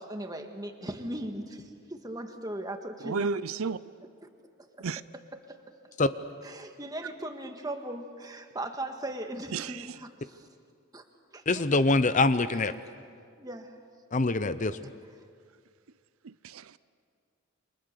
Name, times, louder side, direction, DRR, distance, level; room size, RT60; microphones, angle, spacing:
voice 1, 0.0-3.3 4.8-4.9 5.5-5.6 6.4-10.5 10.9-11.0 11.3-11.4 12.5-12.6 13.4-13.7, right 1 dB, 15° right, 5 dB, 1.6 m, -38 dB
voice 2, 3.0-3.8 4.8-5.0 9.5-10.0 16.2-16.8, right 5 dB, 75° right, 16 dB, 0.6 m, -33 dB
voice 3, 11.5-12.7 14.1-14.9, left 2 dB, 35° left, 13 dB, 0.7 m, -24 dB
29.5 x 25.5 x 6.7 m, 2.2 s
head